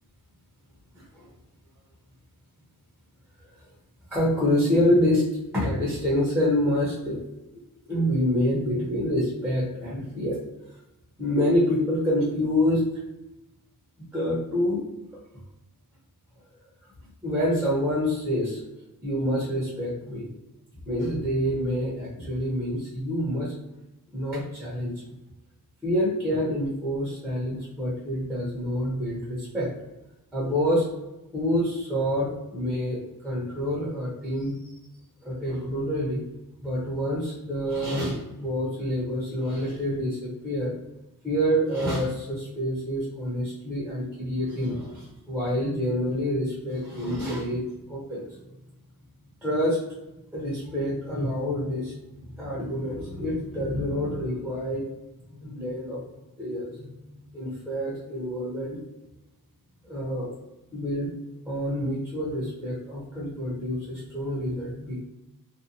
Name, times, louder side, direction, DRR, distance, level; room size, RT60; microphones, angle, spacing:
voice 1, 1.0-1.3 4.1-5.2 5.5-7.2 7.8-10.4 11.2-12.9 14.0-14.8 15.1-15.2 17.2-18.6 19.0-20.3 20.9-23.5 24.1-24.9 25.8-29.7 30.3-30.9 31.3-34.6 35.2-36.2 36.6-40.7 41.2-48.3 49.4-49.8 50.3-54.9 55.3-56.0 56.4-56.9 57.3-58.8 59.8-60.3 60.7-61.1 61.5-65.0, equal, 5° right, -8 dB, 0.8 m, -27 dB
2.5 x 2.2 x 2.7 m, 0.94 s
wide cardioid pair, 140°, 37 cm